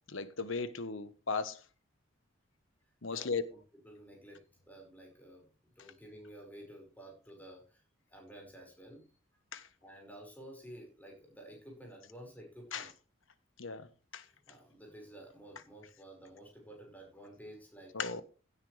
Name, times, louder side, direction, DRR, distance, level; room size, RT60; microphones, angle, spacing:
voice 1, 0.1-1.6 3.0-3.4 9.5-9.7 12.7-12.9 13.6-13.9 14.1-14.2 17.9-18.2, left 4 dB, 70° left, 1.2 m, -36 dB
voice 2, 3.1-5.5 5.8-7.8 8.1-9.1 9.8-12.9 14.2-18.0, right 1 dB, 10° left, 5.2 m, -52 dB
16.5 x 10.0 x 3.3 m
head